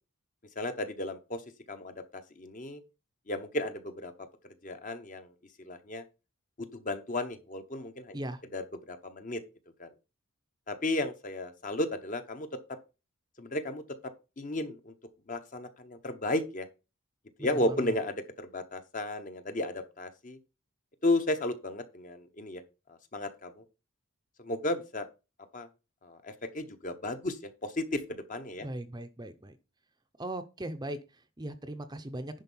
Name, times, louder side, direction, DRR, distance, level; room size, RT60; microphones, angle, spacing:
voice 1, 0.6-1.4 1.7-2.8 3.3-4.1 4.6-5.3 5.6-6.0 6.6-8.2 8.5-8.6 8.9-9.4 9.8-9.9 10.7-12.5 13.4-13.8 14.4-14.9 15.3-16.7 17.4-20.4 21.0-22.6 22.9-23.6 24.4-25.1 25.5-25.7 26.0-28.7, left 1 dB, 35° left, 8 dB, 0.9 m, -34 dB
voice 2, 17.4-18.0 28.6-29.6 30.2-32.4, right 1 dB, 20° right, 8 dB, 0.6 m, -39 dB
10.5 x 4.3 x 5.5 m, 0.30 s
head